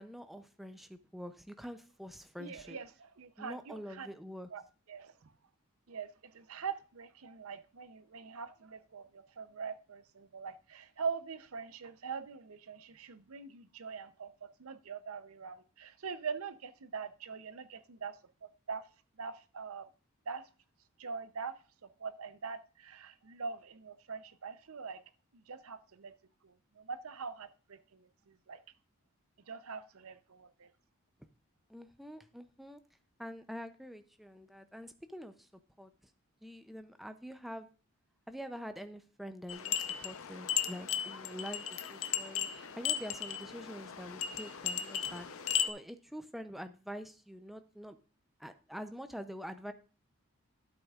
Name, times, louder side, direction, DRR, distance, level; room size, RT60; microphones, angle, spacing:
voice 1, 0.0-2.8 3.4-4.5 31.7-32.8 33.2-35.5 35.8-35.9 36.4-37.7 38.3-48.0 48.4-49.7, equal, ahead, 0.4 m, -46 dB
voice 2, 2.4-4.1 4.5-4.6 4.9-5.1 5.9-18.9 19.2-19.9 20.3-20.5 21.0-21.5 21.8-25.0 25.3-26.1 26.4-28.6 29.5-30.7, right 5 dB, 85° right, 0.7 m, -43 dB
sound 1, 39.5-45.7, left 9 dB, 80° left, 0.7 m, -36 dB
12.5 x 8.0 x 2.4 m
head